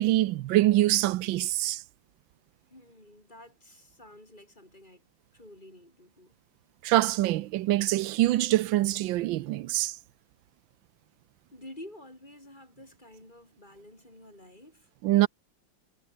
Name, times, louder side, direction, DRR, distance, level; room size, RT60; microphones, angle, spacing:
voice 1, 0.0-1.8 6.8-10.0 15.0-15.3, right 16 dB, 85° right, 1.4 m, -24 dB
voice 2, 2.7-6.3 11.5-14.9, left 1 dB, 25° left, 6.2 m, -50 dB
omnidirectional pair, 2.1 m